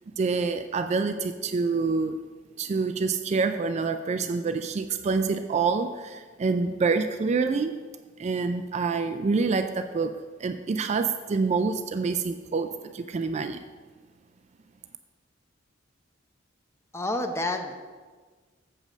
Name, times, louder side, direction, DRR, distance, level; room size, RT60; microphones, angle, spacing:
voice 1, 0.2-2.2 2.6-7.8 8.2-13.7, right 4 dB, 35° right, 8 dB, 0.3 m, -27 dB
voice 2, 16.9-17.7, left 2 dB, 15° left, 5 dB, 0.6 m, -29 dB
7.6 x 5.2 x 6.3 m, 1.4 s
head